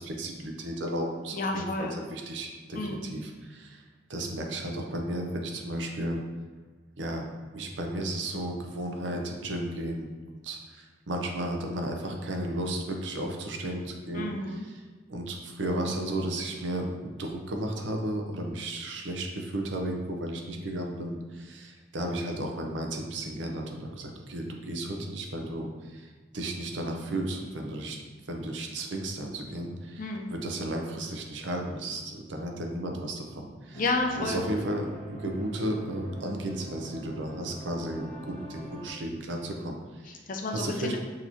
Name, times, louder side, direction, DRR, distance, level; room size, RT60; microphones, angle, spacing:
voice 1, 0.0-3.8 4.1-6.2 7.0-7.3 7.5-10.1 10.4-14.3 15.1-28.0 28.3-30.0 30.3-33.8 34.2-38.2 38.5-40.2 40.5-41.0, right 1 dB, 80° right, 2 dB, 0.6 m, -34 dB
voice 2, 1.3-2.0 2.7-3.1 14.1-14.6 30.0-30.3 33.8-34.4 40.0-41.0, left 2 dB, 45° left, 2 dB, 0.5 m, -31 dB
sound 1, 33.7-38.9, right 1 dB, 30° right, 1.5 m, -45 dB
6.3 x 3.0 x 2.7 m, 1.4 s
head